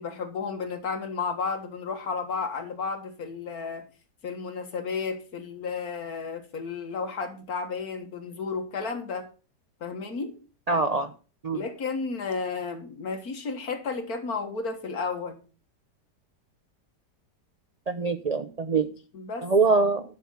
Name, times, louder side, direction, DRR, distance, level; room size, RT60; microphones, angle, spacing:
voice 1, 0.0-3.9 4.2-9.3 9.8-10.4 11.5-15.4 19.1-19.5, left 4 dB, 60° left, 5 dB, 2.0 m, -32 dB
voice 2, 10.7-11.1 11.4-11.6 17.9-18.9 19.4-20.0, right 4 dB, 50° right, 8 dB, 0.4 m, -23 dB
11.0 x 6.3 x 5.5 m, 0.35 s
omnidirectional pair, 1.8 m